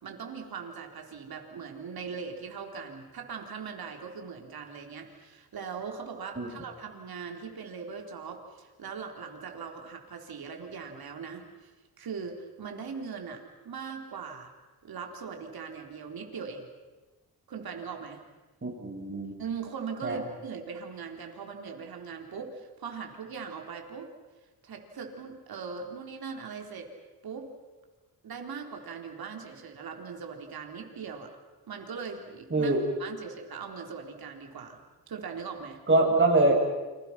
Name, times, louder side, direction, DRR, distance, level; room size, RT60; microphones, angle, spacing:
voice 1, 0.0-11.7 12.0-14.5 14.8-16.6 17.5-18.2 19.4-24.1 24.6-26.9 27.2-27.5 28.2-31.3 31.7-35.8, right 5 dB, 75° right, 3 dB, 4.0 m, -40 dB
voice 2, 18.6-19.3 20.0-20.2 32.5-32.8 35.9-36.5, right 2 dB, 30° right, 0 dB, 7.7 m, -24 dB
30.0 x 26.0 x 6.0 m, 1.2 s
cardioid pair, 90°, 37 cm